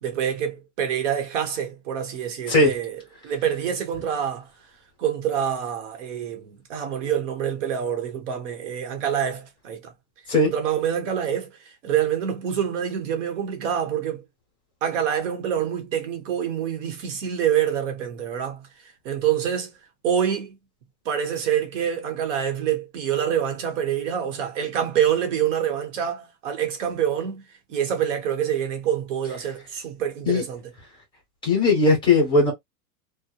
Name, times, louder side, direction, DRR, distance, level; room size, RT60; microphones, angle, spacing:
voice 1, 0.0-4.7 5.0-9.9 10.4-14.2 14.8-19.7 20.0-20.6 21.0-30.7, right 9 dB, 60° right, 1.0 m, -26 dB
voice 2, 31.4-32.5, left 3 dB, 10° left, 1.2 m, -18 dB
2.8 x 2.1 x 2.2 m
supercardioid pair, 170°, 42 cm